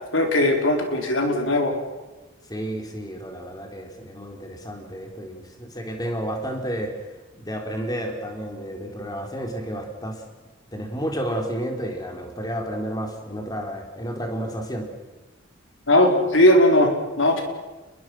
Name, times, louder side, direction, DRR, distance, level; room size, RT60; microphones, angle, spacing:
voice 1, 0.1-1.7 15.9-16.9 17.2-17.4, left 1 dB, 80° left, 3 dB, 4.7 m, -18 dB
voice 2, 2.5-7.0 7.4-10.2 10.7-14.9, equal, 20° left, 2 dB, 4.0 m, -31 dB
29.5 x 21.5 x 6.3 m, 1.2 s
head